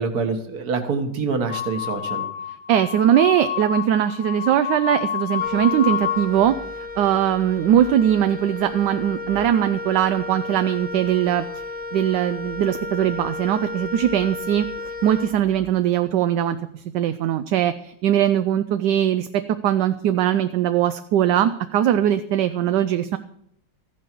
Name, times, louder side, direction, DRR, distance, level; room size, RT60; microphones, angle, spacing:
voice 1, 0.0-2.3, right 4 dB, 55° right, 6 dB, 1.8 m, -26 dB
sound 1, 1.5-6.3, left 10 dB, 70° left, 1.1 m, -28 dB
voice 2, 2.7-6.5 7.0-11.5 11.9-23.2, right 10 dB, 75° right, 10 dB, 1.2 m, -21 dB
Wind instrument woodwind instrument, 5.4-15.8, left 3 dB, 30° left, 0.7 m, -33 dB
14.5 x 11.0 x 4.5 m, 0.73 s
omnidirectional pair, 2.0 m